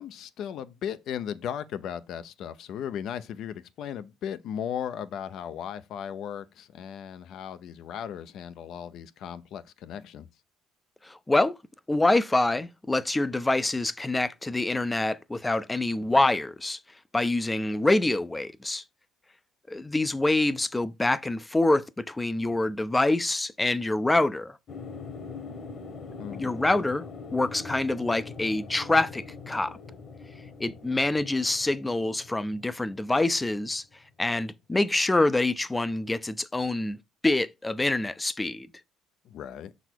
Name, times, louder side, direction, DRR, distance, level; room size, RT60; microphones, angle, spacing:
voice 1, 0.0-10.3 26.2-26.6 39.2-39.7, left 9 dB, 65° left, 0.6 m, -36 dB
voice 2, 11.0-11.6 11.9-16.8 17.1-18.8 19.7-24.6 26.3-27.0 27.3-29.8 30.6-33.8 34.2-37.0 37.2-38.7, left 2 dB, 10° left, 0.5 m, -26 dB
sound 1, 24.7-33.9 34.2-34.3, left 4 dB, 45° left, 1.3 m, -43 dB
6.7 x 4.1 x 4.5 m
cardioid pair, 110°, 0 cm